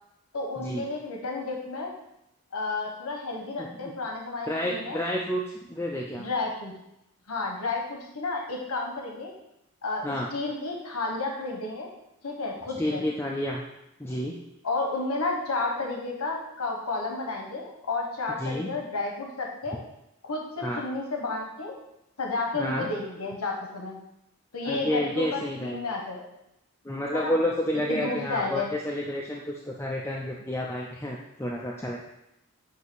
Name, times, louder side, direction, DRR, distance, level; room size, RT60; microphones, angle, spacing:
voice 1, 0.3-1.9 2.5-5.0 6.2-6.7 7.3-9.3 9.8-10.0 10.3-11.9 12.2-13.0 14.6-19.8 20.2-21.7 22.2-24.0 24.5-26.3 27.1-27.4 27.9-28.7, left 3 dB, 90° left, 0 dB, 1.1 m, -31 dB
voice 2, 4.5-5.4 5.7-6.3 10.0-10.3 12.8-13.6 14.0-14.4 18.4-18.7 20.6-20.8 22.5-22.9 24.6-25.8 26.8-32.0, left 1 dB, 10° left, -3 dB, 0.5 m, -30 dB
8.2 x 2.8 x 6.1 m, 0.85 s
head